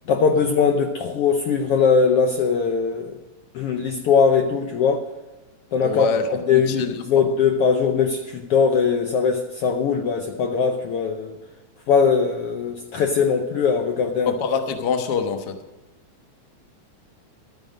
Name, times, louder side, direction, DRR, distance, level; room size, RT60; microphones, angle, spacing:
voice 1, 0.1-3.2 3.5-5.0 5.7-11.4 11.9-14.3, left 6 dB, 70° left, 4 dB, 1.5 m, -20 dB
voice 2, 5.8-6.9 14.3-15.5, left 6 dB, 55° left, 6 dB, 1.2 m, -25 dB
13.0 x 9.3 x 6.3 m, 1.1 s
omnidirectional pair, 3.4 m